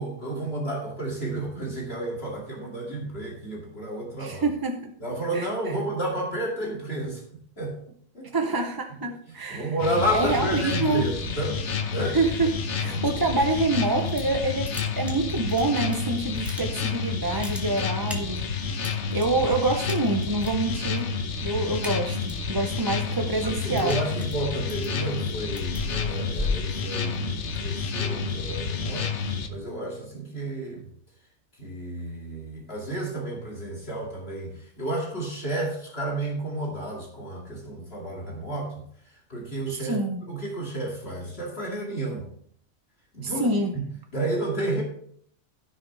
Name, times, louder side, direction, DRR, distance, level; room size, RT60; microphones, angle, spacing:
voice 1, 0.0-4.5 5.0-7.2 7.6-7.7 8.1-8.3 9.3-11.6 11.9-12.2 12.8-12.9 23.4-30.9 31.5-40.0 40.3-42.3 43.1-43.8 44.1-44.8, right 1 dB, 60° left, -3 dB, 2.6 m, -31 dB
voice 2, 4.2-4.9 5.3-5.7 8.3-9.7 10.1-11.1 12.1-12.5 12.7-18.4 19.1-21.1 21.4-23.9 39.7-40.2 43.2-43.7, right 2 dB, 25° right, 3 dB, 0.6 m, -26 dB
sound 1, 9.8-29.5, left 5 dB, 75° left, 1.2 m, -30 dB
sound 2, 13.9-14.4 14.6-16.0 16.3-17.0 17.2-19.3 19.9-20.5 20.8-21.1 21.4-22.5 22.9-27.4, left 2 dB, ahead, 1.7 m, -36 dB
15.5 x 6.5 x 3.3 m, 0.62 s
omnidirectional pair, 1.2 m